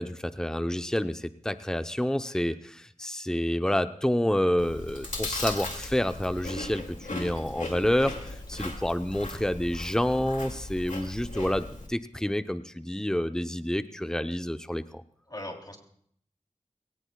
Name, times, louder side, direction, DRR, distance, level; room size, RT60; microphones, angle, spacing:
voice 1, 0.0-15.0, left 1 dB, 5° left, 10 dB, 0.7 m, -28 dB
Chewing mastication, 4.6-11.9, left 2 dB, 85° left, 2.4 m, -38 dB
voice 2, 15.3-15.8, left 1 dB, 30° left, 2 dB, 3.3 m, -41 dB
21.0 x 18.5 x 2.3 m, 0.64 s
wide cardioid pair, 40°, 13 cm